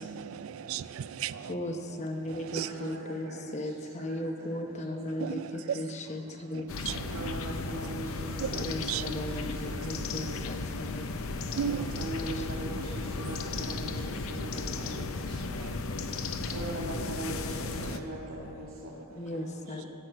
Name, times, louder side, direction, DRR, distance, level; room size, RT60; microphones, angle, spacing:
voice 1, 0.0-1.5 2.3-2.7 5.2-5.8 6.9-7.3 8.4-8.6 8.9-9.1 11.5-11.8 15.6-15.7, right 9 dB, 70° right, 0.3 m, -35 dB
voice 2, 1.5-6.7 8.6-10.9 12.2-12.4 19.2-19.9, left 1 dB, 30° left, 0.8 m, -36 dB
voice 3, 2.4-4.7 5.1-5.8 6.0-6.1 7.1-11.3 11.6-19.9, right 1 dB, 90° right, 2.4 m, -42 dB
sound 1, 6.7-18.0, left 3 dB, 75° left, 0.6 m, -35 dB
14.5 x 6.0 x 7.9 m
head